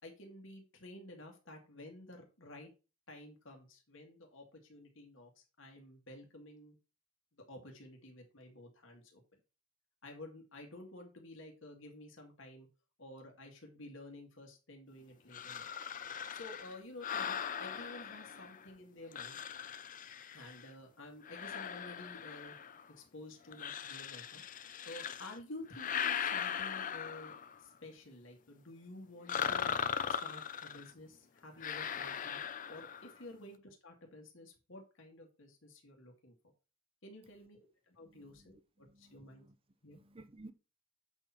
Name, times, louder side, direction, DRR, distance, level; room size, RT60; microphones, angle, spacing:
voice 1, 0.0-2.7 3.1-6.8 7.5-9.4 10.0-12.7 13.0-15.7 16.3-19.4 20.3-22.6 23.0-24.4 24.8-27.3 27.6-29.7 30.1-32.4 32.7-36.3 37.0-39.5 39.8-40.0, left 1 dB, 70° left, 2.1 m, -52 dB
sound 1, 15.3-18.7 19.1-20.7 21.2-22.9 23.5-25.4 25.7-27.6 29.3-30.9 31.6-33.2, left 8 dB, 40° left, 0.5 m, -39 dB
voice 2, 38.0-39.6 39.8-40.5, right 2 dB, 30° right, 0.6 m, -57 dB
8.0 x 4.4 x 5.7 m
head